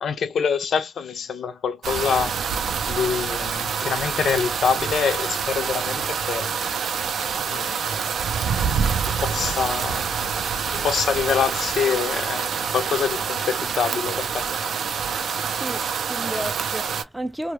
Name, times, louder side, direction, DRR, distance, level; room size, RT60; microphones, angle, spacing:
voice 1, 0.0-2.4 2.9-6.5 7.5-7.8 9.0-10.1 10.7-14.4, left 7 dB, 75° left, 0.4 m, -25 dB
sound 1, 1.8-17.0, right 6 dB, 80° right, 0.4 m, -26 dB
voice 2, 7.2-7.7 15.3-17.5, right 1 dB, 10° right, 0.3 m, -34 dB
2.1 x 2.0 x 2.9 m
cardioid pair, 95°, 0 cm